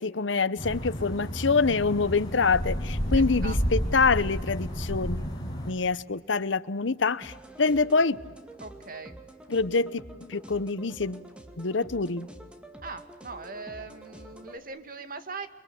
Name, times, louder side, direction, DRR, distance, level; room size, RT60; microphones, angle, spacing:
voice 1, 0.0-5.3 5.7-8.2 9.5-10.0 10.3-11.2 11.6-12.3, left 4 dB, 80° left, 0.9 m, -25 dB
sound 1, 0.6-5.7, equal, 20° left, 5.3 m, -31 dB
voice 2, 3.1-3.6 8.6-9.2 12.8-15.5, right 4 dB, 50° right, 2.1 m, -40 dB
sound 2, 7.2-14.6, right 1 dB, 5° right, 2.3 m, -47 dB
29.5 x 23.0 x 8.6 m
head